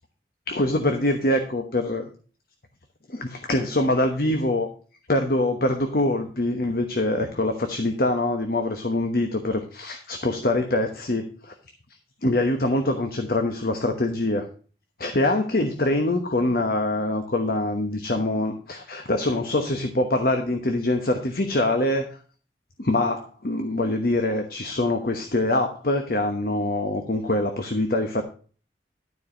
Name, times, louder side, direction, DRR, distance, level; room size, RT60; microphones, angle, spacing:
voice 1, 0.5-2.1 3.1-4.7 5.1-11.5 12.2-14.5 15.0-22.2 22.8-28.2, left 1 dB, 55° left, 5 dB, 1.1 m, -24 dB
12.5 x 4.8 x 5.7 m, 0.39 s
head